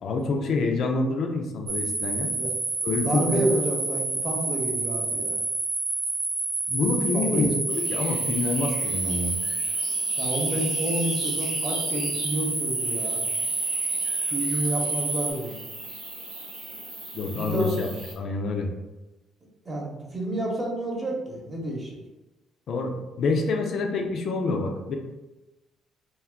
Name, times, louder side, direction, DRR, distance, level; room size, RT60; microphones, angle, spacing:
voice 1, 0.0-2.3 2.8-3.4 6.7-9.4 17.1-17.9 18.2-18.7 22.7-22.9 23.2-25.0, left 3 dB, 60° left, 3 dB, 0.4 m, -27 dB
sound 1, 1.7-15.3, right 2 dB, 50° right, 0.8 m, -28 dB
voice 2, 2.9-5.4 7.1-7.6 10.2-13.2 14.3-15.5 17.4-17.7 19.6-21.9, right 1 dB, 20° right, -2 dB, 0.9 m, -29 dB
sound 2, 7.7-18.1, right 1 dB, 85° right, 1.5 m, -40 dB
2.4 x 2.2 x 3.6 m, 1.1 s
supercardioid pair, 80°, 0 cm